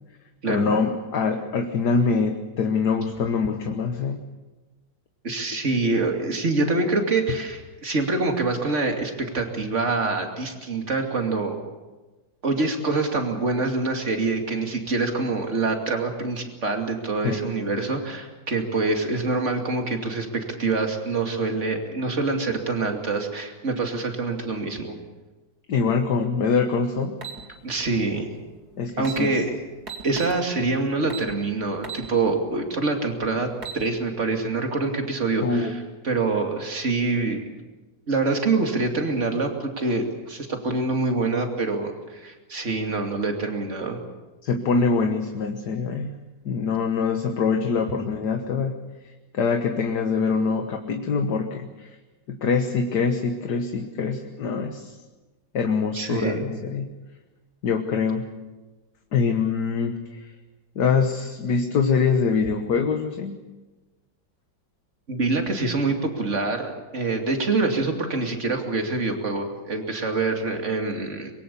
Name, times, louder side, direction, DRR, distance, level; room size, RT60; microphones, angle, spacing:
voice 1, 0.5-4.2 5.9-6.0 17.2-17.5 25.7-27.2 28.8-29.4 35.4-35.8 44.4-46.1 46.5-48.7 49.3-52.0 52.3-55.0 55.5-56.9 57.6-58.4 59.1-60.3 60.8-63.4, left 5 dB, 60° left, 5 dB, 1.8 m, -24 dB
voice 2, 5.2-11.6 12.4-25.0 27.6-28.3 29.0-29.5 30.0-33.5 33.7-37.4 38.1-44.0 55.9-56.5 65.1-71.3, right 3 dB, 40° right, 4 dB, 2.9 m, -25 dB
sound 1, 27.2-27.4 28.6-28.7 29.0-29.2 29.9-30.4 31.1-31.3 31.8-32.1 32.5-32.6 33.4-33.8, right 6 dB, 55° right, 2.8 m, -34 dB
24.5 x 22.5 x 7.0 m, 1.2 s
omnidirectional pair, 2.0 m